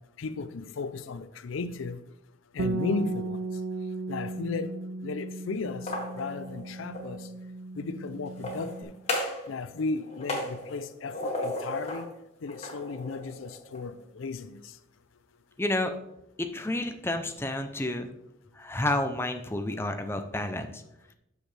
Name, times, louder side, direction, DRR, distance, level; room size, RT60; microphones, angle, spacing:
voice 1, 0.2-2.0 2.5-3.4 4.1-4.7 5.0-5.9 6.2-7.2 7.8-8.9 9.5-12.1 12.4-14.6, left 4 dB, 90° left, 0.5 m, -35 dB
Bass guitar, 2.6-8.8, right 3 dB, 90° right, 0.5 m, -36 dB
sound 1, 5.7-7.1 8.3-9.5 9.8-12.1 12.5-13.8, left 1 dB, 35° left, 1.7 m, -35 dB
voice 2, 15.6-15.9 16.4-18.1 18.6-20.8, left 1 dB, 10° left, 0.5 m, -30 dB
8.9 x 6.6 x 3.3 m
head